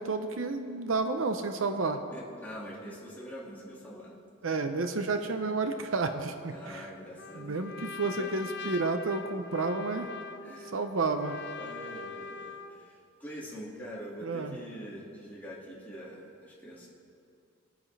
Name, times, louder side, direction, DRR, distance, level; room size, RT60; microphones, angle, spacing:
voice 1, 0.0-2.0 4.4-6.9 7.3-10.1 10.7-11.4 14.2-14.6, right 3 dB, 75° right, 7 dB, 0.7 m, -31 dB
voice 2, 2.1-4.2 6.5-7.6 8.2-8.3 10.4-10.7 11.6-16.9, equal, 10° left, -6 dB, 2.1 m, -44 dB
Trumpet, 7.2-12.8, left 5 dB, 55° left, 0.6 m, -42 dB
20.5 x 9.0 x 3.3 m, 2.5 s
head